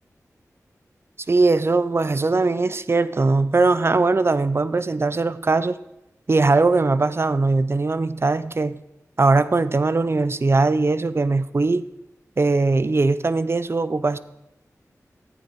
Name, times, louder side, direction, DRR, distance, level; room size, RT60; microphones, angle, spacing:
voice 1, 1.3-5.8 6.3-8.8 9.2-11.9 12.4-14.2, right 3 dB, 45° right, 14 dB, 0.6 m, -20 dB
13.0 x 9.0 x 4.6 m, 0.91 s
cardioid pair, 55°, 6 cm